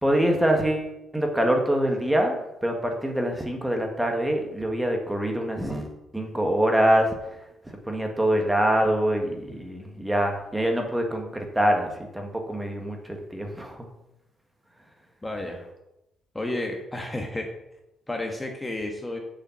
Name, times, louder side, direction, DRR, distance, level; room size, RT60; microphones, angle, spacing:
voice 1, 0.0-7.1 7.7-13.9, right 1 dB, 10° right, 3 dB, 1.7 m, -25 dB
voice 2, 15.2-15.7 16.3-17.5 18.1-19.2, left 1 dB, 15° left, 2 dB, 1.4 m, -31 dB
7.2 x 5.6 x 7.3 m, 0.89 s
cardioid pair, 90°, 0 cm